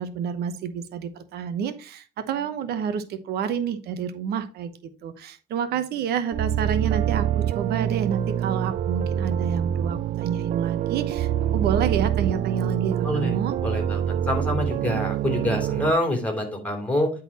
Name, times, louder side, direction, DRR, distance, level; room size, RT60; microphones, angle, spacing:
voice 1, 0.0-4.7 5.0-13.5, right 7 dB, 70° right, 11 dB, 0.9 m, -29 dB
sound 1, 6.3-15.9, right 10 dB, 50° right, 0.4 m, -25 dB
voice 2, 13.6-17.1, left 1 dB, 10° left, 3 dB, 2.9 m, -26 dB
10.0 x 4.0 x 4.2 m, 0.35 s
cardioid pair, 110°, 17 cm